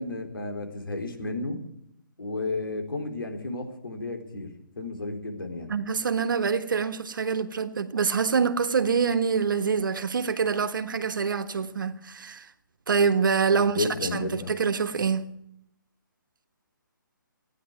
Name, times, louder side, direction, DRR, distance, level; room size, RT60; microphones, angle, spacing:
voice 1, 0.0-1.6 2.2-5.8 13.6-14.5, left 2 dB, 90° left, 3.9 m, -32 dB
voice 2, 5.7-12.5 12.9-15.3, right 5 dB, 70° right, 1.4 m, -25 dB
15.5 x 10.0 x 9.0 m
hypercardioid pair, 155°, 11 cm